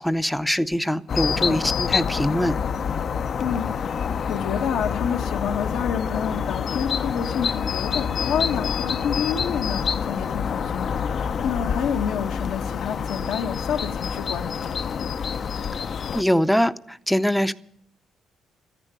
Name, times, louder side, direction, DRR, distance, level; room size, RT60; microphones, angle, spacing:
voice 1, 0.0-2.6 16.1-17.5, equal, 5° left, 0.6 m, -23 dB
sound 1, 1.1-16.2, left 6 dB, 55° left, 0.6 m, -27 dB
voice 2, 1.4-1.8 3.4-15.1, left 7 dB, 85° left, 1.4 m, -29 dB
13.5 x 10.0 x 9.0 m
cardioid pair, 90°, 0 cm